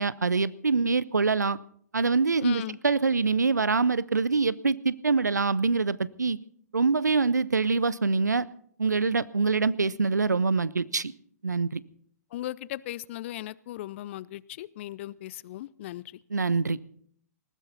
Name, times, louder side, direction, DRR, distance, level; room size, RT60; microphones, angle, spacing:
voice 1, 0.0-1.6 1.9-6.4 6.7-8.5 8.8-11.1 11.4-11.8 16.3-16.8, right 4 dB, 85° right, 21 dB, 0.6 m, -25 dB
voice 2, 2.4-2.8 12.3-16.2, left 14 dB, 45° left, 23 dB, 0.5 m, -37 dB
19.5 x 15.0 x 4.1 m, 0.62 s
figure-of-eight pair, 115°, 9 cm